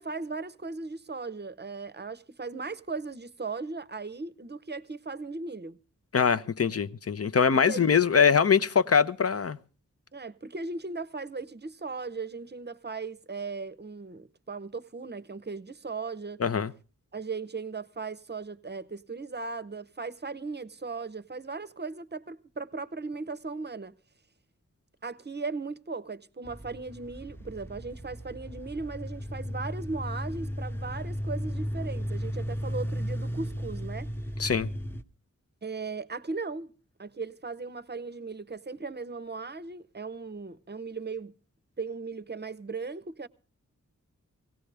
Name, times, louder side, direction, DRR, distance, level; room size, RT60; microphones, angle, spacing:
voice 1, 0.0-5.8 7.7-7.9 10.1-16.4 17.1-23.9 25.0-34.1 35.6-36.7 37.0-41.4 41.8-43.3, right 4 dB, 35° right, 0.7 m, -37 dB
voice 2, 6.1-9.6 16.4-16.7 34.4-34.7, left 6 dB, 50° left, 0.7 m, -23 dB
sound 1, 26.4-35.0, equal, 5° left, 0.8 m, -35 dB
18.0 x 17.0 x 3.4 m
wide cardioid pair, 100°, 31 cm